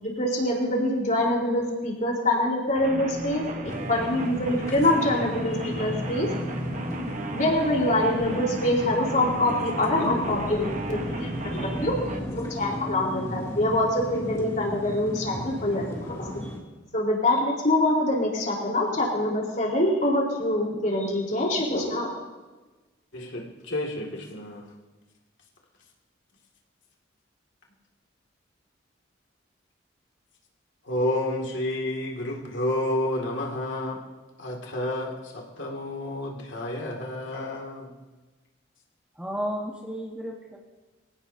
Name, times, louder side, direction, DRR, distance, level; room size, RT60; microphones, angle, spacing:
voice 1, 0.0-6.3 7.3-12.0 12.3-16.5 16.9-22.1, left 1 dB, 40° left, -2 dB, 4.1 m, -25 dB
sound 1, 2.7-12.2, right 2 dB, 40° right, 1.2 m, -35 dB
sound 2, 3.6-16.6, equal, 20° left, 2.7 m, -35 dB
voice 2, 23.1-24.7 30.8-34.0 34.4-37.9, left 1 dB, 70° left, -1 dB, 2.4 m, -30 dB
voice 3, 39.2-40.6, equal, 5° right, -1 dB, 1.3 m, -32 dB
24.5 x 17.0 x 2.8 m, 1.2 s
head